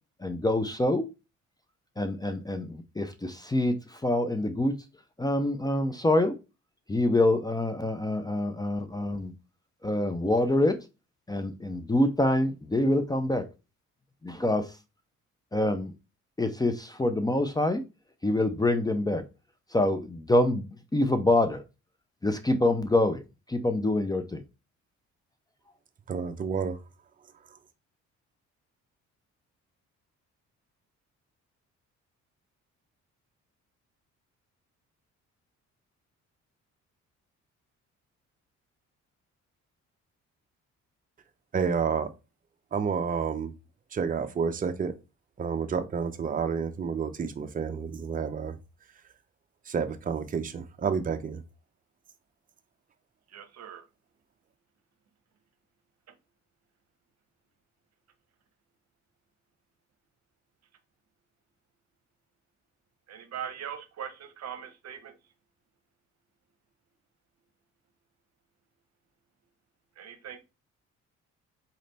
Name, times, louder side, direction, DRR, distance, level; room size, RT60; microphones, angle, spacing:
voice 1, 0.2-1.1 2.0-3.8 4.0-4.7 5.2-6.3 6.9-9.3 9.8-10.8 11.3-13.4 14.2-14.6 15.5-15.9 16.4-17.8 18.2-19.2 19.7-20.7 20.9-21.6 22.2-23.2 23.5-24.4, left 1 dB, 15° left, 0.5 m, -25 dB
voice 2, 26.1-26.8 41.5-42.1 42.7-43.5 43.9-44.9 45.4-48.6 49.7-51.4, right 6 dB, 30° right, 0.6 m, -30 dB
voice 3, 53.3-53.8 63.1-65.1 70.0-70.4, right 8 dB, 60° right, 0.9 m, -40 dB
4.1 x 3.2 x 4.0 m
cardioid pair, 90°, 30 cm